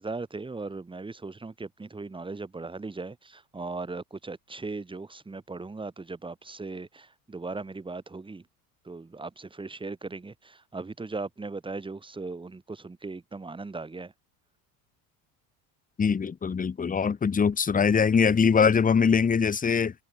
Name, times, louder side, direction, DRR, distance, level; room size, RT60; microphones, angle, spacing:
voice 1, 0.0-8.4 8.9-14.1, right 3 dB, 10° right, 1.9 m, -38 dB
voice 2, 16.0-19.9, left 6 dB, 20° left, 1.5 m, -22 dB
supercardioid pair, 110°, 41 cm